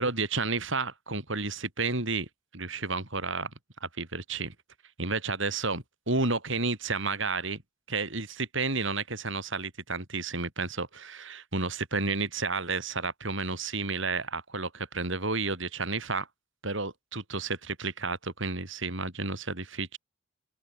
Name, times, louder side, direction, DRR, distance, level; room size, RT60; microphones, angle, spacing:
voice 1, 0.0-2.3 2.5-3.5 3.8-4.5 5.0-7.6 7.9-16.3 16.6-20.0, right 3 dB, 60° right, 4.3 m, -31 dB
open air
head